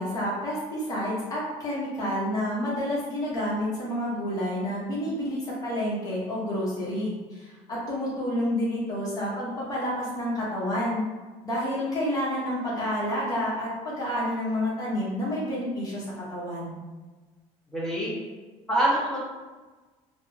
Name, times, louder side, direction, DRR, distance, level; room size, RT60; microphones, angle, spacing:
voice 1, 0.0-11.0 11.4-16.8, equal, 25° left, -7 dB, 1.0 m, -29 dB
voice 2, 17.7-18.2 18.7-19.2, right 1 dB, 5° left, -7 dB, 0.7 m, -25 dB
2.8 x 2.3 x 2.7 m, 1.3 s
cardioid pair, 155°, 13 cm